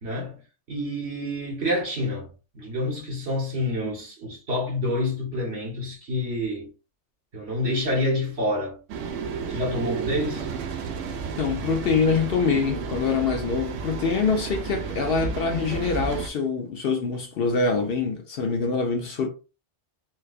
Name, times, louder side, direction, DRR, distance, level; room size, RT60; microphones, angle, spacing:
voice 1, 0.0-0.4 0.7-2.3 2.5-6.7 7.3-8.8 9.5-10.5, left 1 dB, 60° right, 1.4 m, -28 dB
sound 1, 8.9-16.3, right 5 dB, 90° right, 1.0 m, -32 dB
voice 2, 11.4-19.3, left 5 dB, 60° left, 0.7 m, -25 dB
4.4 x 2.2 x 2.4 m
omnidirectional pair, 1.2 m